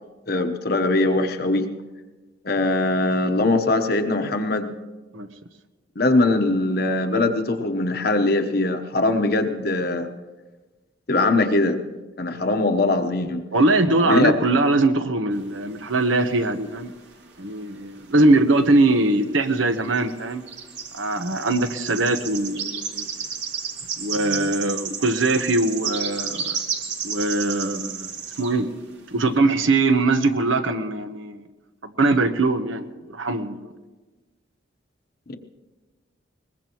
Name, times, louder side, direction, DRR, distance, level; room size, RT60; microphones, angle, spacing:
voice 1, 0.3-1.7 2.4-4.7 6.0-10.1 11.1-11.8 12.2-13.4 14.0-14.3 35.3-35.4, left 2 dB, 50° left, 6 dB, 1.0 m, -21 dB
voice 2, 13.5-16.9 17.4-20.4 20.9-23.1 24.0-26.6 27.0-28.1 28.4-28.7 29.1-31.4 31.8-33.7, right 2 dB, 80° right, 8 dB, 1.1 m, -21 dB
sound 1, 15.4-17.0 17.3-18.6 18.9-19.1 19.7-28.6, right 6 dB, 65° right, 2.3 m, -32 dB
22.0 x 21.0 x 3.1 m, 1.2 s
head